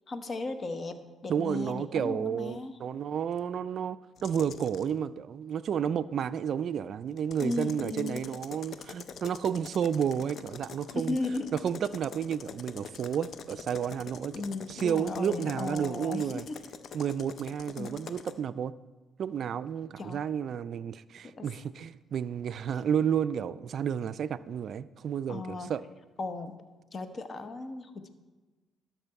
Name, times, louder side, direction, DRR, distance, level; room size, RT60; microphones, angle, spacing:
voice 1, 0.1-2.8 7.4-8.2 10.9-11.5 14.3-16.6 17.8-18.0 20.0-20.2 21.4-21.5 25.3-25.7 26.2-26.6 26.9-28.1, left 3 dB, 45° left, 0.9 m, -36 dB
voice 2, 1.3-11.2 11.5-14.4 14.7-16.4 16.9-18.7 19.2-25.8, right 8 dB, 60° right, 0.3 m, -31 dB
sound 1, 4.2-4.9 7.2-18.4, left 6 dB, 60° left, 0.5 m, -45 dB
12.5 x 5.9 x 4.6 m
cardioid pair, 90°, 0 cm